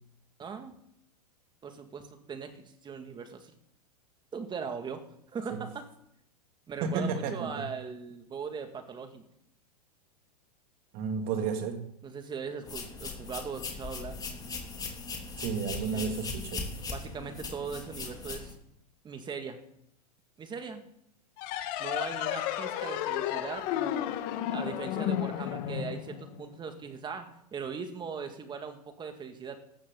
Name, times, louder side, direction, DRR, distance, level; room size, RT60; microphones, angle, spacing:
voice 1, 0.4-0.7 1.6-3.5 4.3-5.9 6.7-9.2 12.0-14.2 15.9-16.2 16.9-18.6 19.0-19.6 20.4-20.8 21.8-29.6, right 5 dB, 20° right, 6 dB, 2.2 m, -40 dB
voice 2, 6.8-7.7 10.9-11.9 15.4-16.7, right 5 dB, 45° right, 5 dB, 2.7 m, -32 dB
sound 1, 12.6-18.5, left 4 dB, 20° left, 2.8 m, -39 dB
sound 2, 21.4-26.6, left 11 dB, 45° left, 1.6 m, -32 dB
15.5 x 13.0 x 4.0 m, 0.74 s
hypercardioid pair, 105°, 20 cm